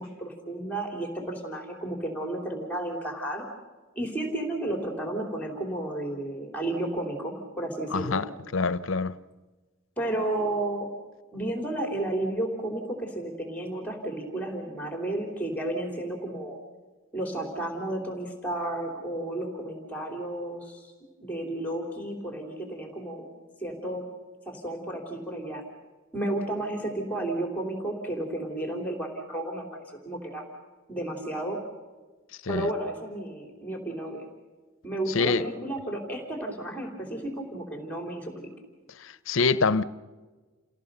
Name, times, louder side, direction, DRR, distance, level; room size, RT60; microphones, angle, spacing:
voice 1, 0.0-3.4 3.9-8.2 10.0-10.9 11.3-16.6 17.1-20.9 21.2-23.3 23.6-24.0 24.4-25.6 26.1-29.6 30.0-30.4 30.9-31.6 32.5-34.2 34.8-38.5, right 1 dB, 10° left, 3.3 m, -32 dB
voice 2, 7.9-9.1 32.4-32.7 35.1-35.5 39.3-39.8, left 4 dB, 75° left, 0.8 m, -25 dB
29.0 x 17.0 x 6.8 m
head